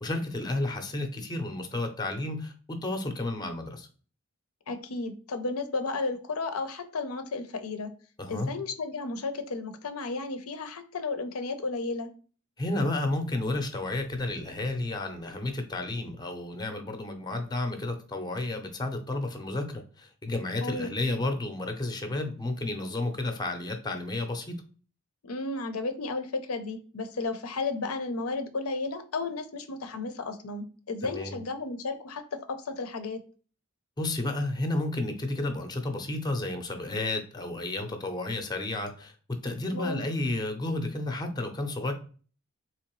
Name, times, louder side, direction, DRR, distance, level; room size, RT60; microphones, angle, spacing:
voice 1, 0.0-3.9 8.2-8.5 12.6-24.5 31.0-31.4 34.0-41.9, left 2 dB, 20° left, 6 dB, 0.6 m, -32 dB
voice 2, 4.7-7.9 8.3-12.1 20.6-20.9 25.2-33.2 39.7-40.0, left 3 dB, 80° left, 8 dB, 0.6 m, -33 dB
3.8 x 3.0 x 3.0 m, 0.39 s
head